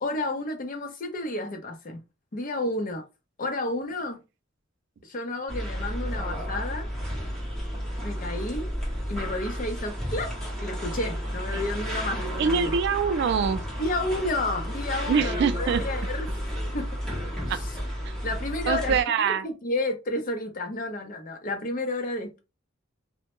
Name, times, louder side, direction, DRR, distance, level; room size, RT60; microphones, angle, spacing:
voice 1, 0.0-2.0 2.3-3.0 3.4-4.2 5.0-6.9 8.0-8.7 9.1-12.7 13.8-16.3 16.7-16.9 17.4-17.5 18.2-19.0 19.2-22.4, left 2 dB, 45° left, 0.6 m, -31 dB
sound 1, 5.5-19.0, equal, 5° left, 0.9 m, -32 dB
voice 2, 12.4-13.6 15.0-15.8 17.5-17.6 18.0-18.2 18.7-19.5, right 6 dB, 60° right, 0.3 m, -24 dB
2.1 x 2.1 x 2.9 m
head